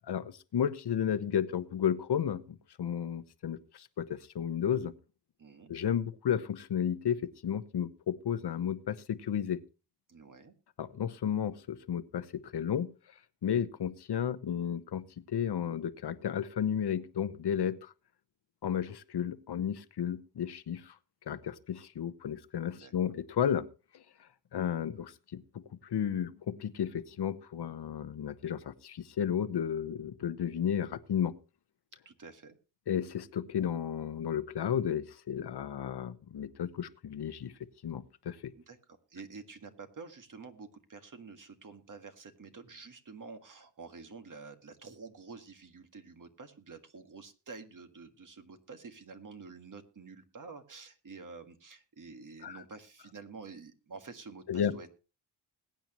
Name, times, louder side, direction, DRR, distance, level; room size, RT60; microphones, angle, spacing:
voice 1, 0.1-4.1 4.3-4.9 5.7-9.6 10.8-12.9 13.4-17.9 18.6-20.9 21.3-23.7 23.9-24.0 24.5-31.3 32.9-37.5 37.8-38.5 52.4-52.6 54.5-54.8, left 9 dB, 65° left, 13 dB, 1.0 m, -33 dB
voice 2, 5.4-5.7 10.1-10.5 22.7-23.2 32.1-32.6 38.6-54.9, right 4 dB, 45° right, 6 dB, 1.8 m, -49 dB
21.0 x 9.0 x 3.0 m, 0.33 s
cardioid pair, 90°, 42 cm